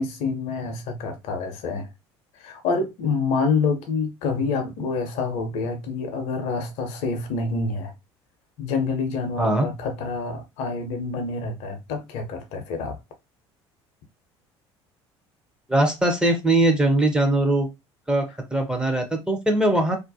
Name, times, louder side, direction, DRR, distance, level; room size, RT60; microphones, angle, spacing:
voice 1, 0.0-1.9 2.4-7.9 8.6-13.0, left 4 dB, 55° left, 0.6 m, -27 dB
voice 2, 15.7-17.7 18.1-20.0, right 1 dB, 5° right, 0.6 m, -21 dB
2.3 x 2.1 x 2.6 m
figure-of-eight pair, 60°, 14 cm